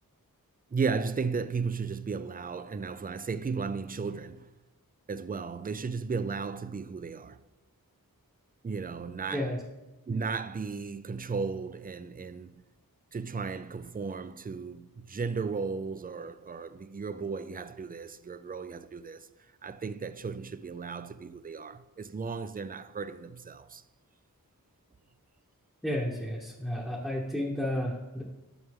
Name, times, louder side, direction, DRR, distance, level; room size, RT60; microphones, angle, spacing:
voice 1, 0.7-4.5 5.1-7.4 8.6-9.5 10.1-12.6 13.1-19.3 19.6-23.8, right 5 dB, 25° right, 0.4 m, -35 dB
voice 2, 9.3-9.6 25.8-28.2, left 1 dB, ahead, 1.1 m, -32 dB
9.6 x 6.1 x 3.6 m
wide cardioid pair, 45°, 36 cm